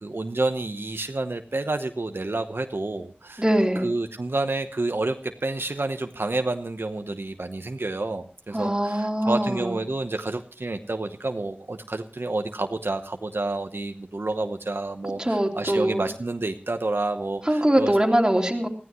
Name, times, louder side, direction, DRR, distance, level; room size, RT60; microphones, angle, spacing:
voice 1, 0.0-3.4 3.8-17.9, right 2 dB, 85° right, 6 dB, 0.9 m, -29 dB
voice 2, 3.4-3.9 8.5-9.8 15.2-16.0 17.4-18.7, right 1 dB, 20° right, 1 dB, 3.0 m, -22 dB
20.5 x 15.0 x 3.1 m, 0.39 s
wide cardioid pair, 45°, 4 cm